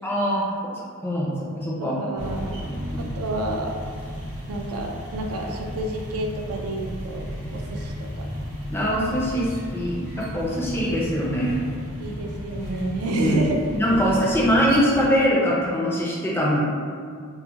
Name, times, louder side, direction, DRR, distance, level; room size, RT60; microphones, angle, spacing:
voice 1, 0.0-0.4 1.0-2.0 2.9-3.0 8.7-11.6 13.2-13.4 13.7-16.6, equal, 10° left, -5 dB, 0.3 m, -23 dB
voice 2, 1.8-2.6 3.0-3.8 4.5-7.2 7.5-8.3 12.0-13.6 13.9-14.0, right 1 dB, 75° right, 1 dB, 0.3 m, -29 dB
sound 1, 2.2-15.1, equal, 55° right, 0.8 m, -34 dB
2.2 x 2.1 x 2.8 m, 2.1 s
head